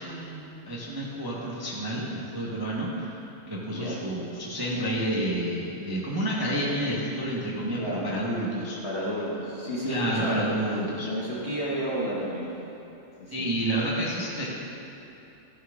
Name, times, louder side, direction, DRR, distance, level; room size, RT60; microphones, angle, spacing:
voice 1, 0.0-3.2 3.5-8.8 9.9-11.1 13.3-14.5, right 1 dB, 15° right, -6 dB, 0.9 m, -29 dB
voice 2, 3.7-4.0 7.8-8.2 8.8-10.5 11.0-12.5 13.2-13.5, equal, 40° left, -6 dB, 1.2 m, -31 dB
13.5 x 7.6 x 3.7 m, 2.9 s
omnidirectional pair, 2.3 m